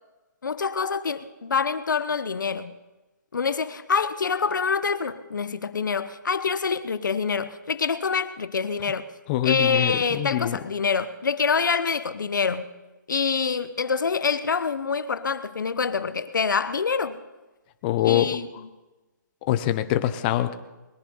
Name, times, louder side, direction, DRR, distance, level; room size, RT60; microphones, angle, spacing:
voice 1, 0.4-2.7 3.3-9.1 9.4-12.6 13.1-17.2 18.0-18.7, left 5 dB, 75° left, 12 dB, 1.1 m, -26 dB
voice 2, 9.3-10.6 17.8-18.3 19.5-20.6, left 13 dB, 30° left, 10 dB, 1.0 m, -24 dB
21.5 x 10.5 x 5.6 m, 1.1 s
hypercardioid pair, 145°, 10 cm